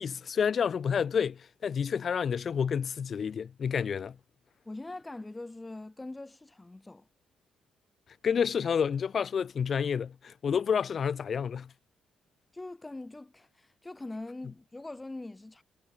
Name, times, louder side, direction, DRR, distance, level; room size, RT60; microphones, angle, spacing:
voice 1, 0.0-4.2 8.2-11.7, left 7 dB, 50° left, 0.3 m, -29 dB
voice 2, 4.7-7.1 12.5-15.6, left 2 dB, 15° left, 2.1 m, -42 dB
cardioid pair, 90°, 0 cm